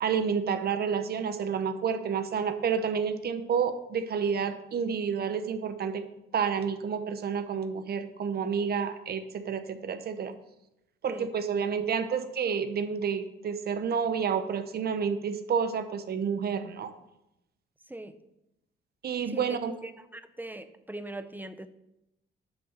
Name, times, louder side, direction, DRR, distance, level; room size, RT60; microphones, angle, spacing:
voice 1, 0.0-6.0 6.3-10.3 11.0-16.9 19.0-19.7, right 6 dB, 50° right, 0.7 m, -29 dB
voice 2, 19.3-21.7, right 1 dB, 10° right, 0.5 m, -41 dB
6.4 x 5.0 x 6.4 m
cardioid pair, 90°, 20 cm